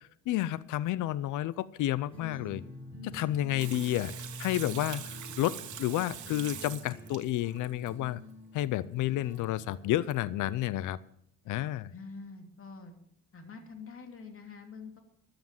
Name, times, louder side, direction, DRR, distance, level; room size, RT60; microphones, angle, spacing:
voice 1, 0.3-2.6 3.0-4.1 4.4-8.2 8.5-11.0 11.5-11.9, left 14 dB, 80° left, 18 dB, 0.6 m, -31 dB
sound 1, 2.1-10.6, left 1 dB, 20° left, 6.7 m, -47 dB
Water tap faucet / Sink (filling or washing), 3.6-7.9 9.4-9.5 9.7-9.8 10.1-10.2, right 10 dB, 75° right, 1.6 m, -43 dB
voice 2, 11.9-12.9 13.3-15.0, left 4 dB, 45° left, 4 dB, 2.8 m, -46 dB
13.0 x 8.7 x 7.5 m, 0.70 s
cardioid pair, 90°, 30 cm